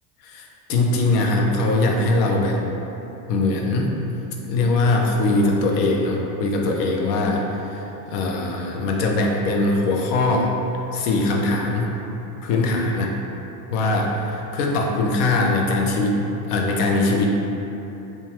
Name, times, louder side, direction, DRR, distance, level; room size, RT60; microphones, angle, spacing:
voice 1, 0.2-2.6 3.3-3.9 4.4-10.5 10.9-11.9 12.4-13.1 13.7-17.3, left 2 dB, 70° left, 0 dB, 0.6 m, -21 dB
2.8 x 2.3 x 2.8 m, 3.0 s
supercardioid pair, 105°, 49 cm